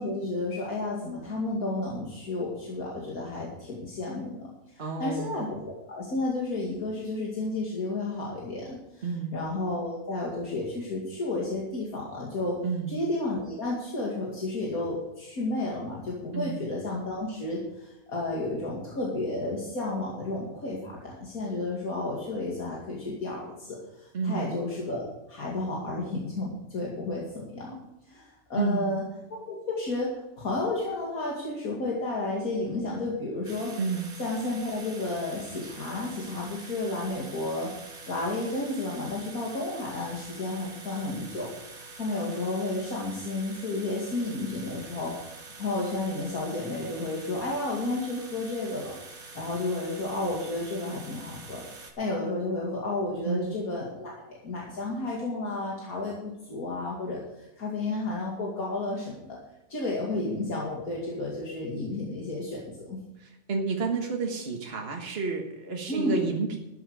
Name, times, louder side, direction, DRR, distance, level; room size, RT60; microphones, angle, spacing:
voice 1, 0.0-12.6 12.9-27.8 28.1-29.0 29.3-33.7 34.2-37.7 38.1-59.4 59.7-63.0 65.9-66.2, left 2 dB, 80° left, -4 dB, 2.8 m, -32 dB
voice 2, 4.8-5.5 9.0-9.3 12.6-13.0 16.3-16.6 24.1-24.5 28.5-29.0 33.8-34.1 53.2-53.5 63.5-66.6, right 5 dB, 45° right, 1 dB, 1.7 m, -30 dB
sound 1, 33.4-51.9, right 3 dB, 85° right, 2.3 m, -46 dB
13.5 x 10.0 x 4.9 m, 0.93 s
omnidirectional pair, 1.5 m